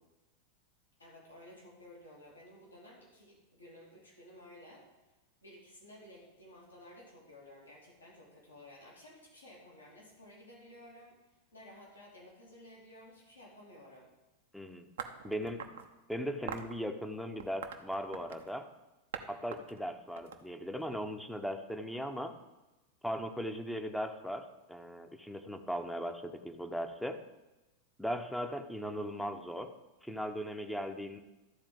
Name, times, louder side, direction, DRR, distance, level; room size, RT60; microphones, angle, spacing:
voice 1, 1.0-4.9 5.4-11.2 11.5-14.1, left 1 dB, 80° left, -4 dB, 3.0 m, -54 dB
voice 2, 14.5-14.9 15.2-15.6 16.1-18.7 19.3-22.3 23.0-27.2 28.0-29.7 30.0-31.2, equal, ahead, 7 dB, 0.9 m, -38 dB
sound 1, 15.0-15.9 16.5-16.8 17.4-18.5 19.1-19.3 19.5-20.9, right 8 dB, 60° right, 0.8 m, -43 dB
13.0 x 4.4 x 7.7 m, 1.1 s
figure-of-eight pair, 90°, 0 cm